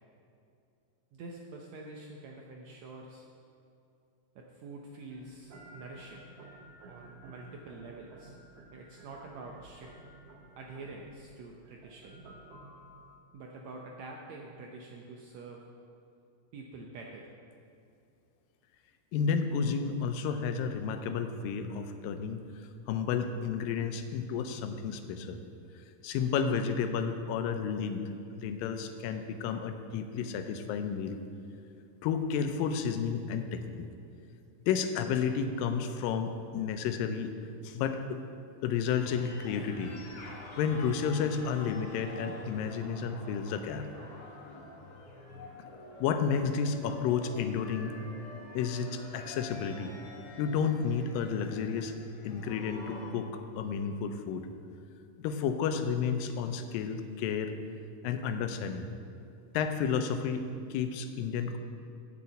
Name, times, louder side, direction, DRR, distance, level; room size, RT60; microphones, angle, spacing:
voice 1, 1.1-3.2 4.3-6.3 6.9-8.4 8.7-9.9 10.5-12.2 13.3-15.6 16.5-17.3, right 3 dB, 80° right, 0 dB, 1.6 m, -46 dB
sound 1, 5.1-13.2, right 2 dB, 60° right, 1.7 m, -53 dB
voice 2, 19.1-22.4 22.9-25.4 26.0-31.2 32.0-33.9 34.7-37.3 37.6-38.2 38.6-39.9 40.6-43.9 46.0-47.9 48.5-49.9 50.4-51.9 52.2-53.3 53.6-54.5 55.2-57.5 58.0-58.9 59.5-61.6, left 6 dB, 90° left, 8 dB, 2.4 m, -31 dB
sound 2, 39.0-53.1, left 2 dB, 60° left, 2.8 m, -47 dB
7.6 x 7.0 x 8.1 m, 2.6 s
omnidirectional pair, 4.0 m